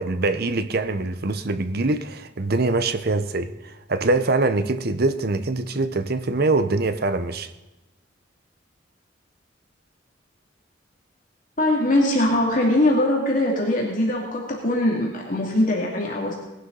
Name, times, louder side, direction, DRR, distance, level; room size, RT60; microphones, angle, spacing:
voice 1, 0.0-7.5, right 2 dB, 55° right, 0.9 m, -23 dB
voice 2, 11.6-16.3, left 1 dB, 45° left, 2.5 m, -21 dB
19.5 x 11.5 x 4.0 m
head